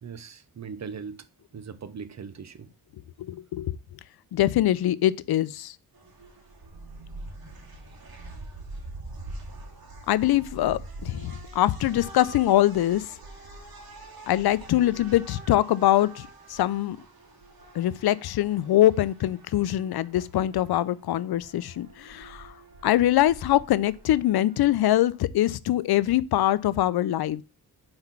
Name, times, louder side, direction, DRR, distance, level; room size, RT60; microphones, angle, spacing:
voice 1, 0.0-1.3 1.5-2.7, right 6 dB, 45° right, 0.8 m, -39 dB
voice 2, 3.2-3.8 4.3-5.7 10.1-13.0 14.3-17.0 17.7-22.5 22.8-27.4, left 13 dB, 80° left, 0.5 m, -23 dB
sound 1, 5.9-24.9, right 2 dB, 70° right, 2.4 m, -45 dB
5.9 x 4.4 x 5.7 m
wide cardioid pair, 110°, 37 cm